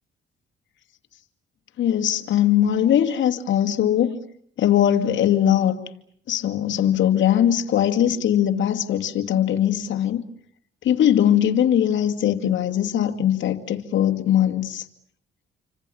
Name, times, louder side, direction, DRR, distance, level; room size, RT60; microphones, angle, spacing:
voice 1, 1.8-4.2 4.6-5.8 6.3-10.2 10.8-14.8, left 10 dB, 70° left, 6 dB, 2.5 m, -20 dB
28.5 x 25.0 x 7.1 m, 0.67 s
cardioid pair, 90°, 20 cm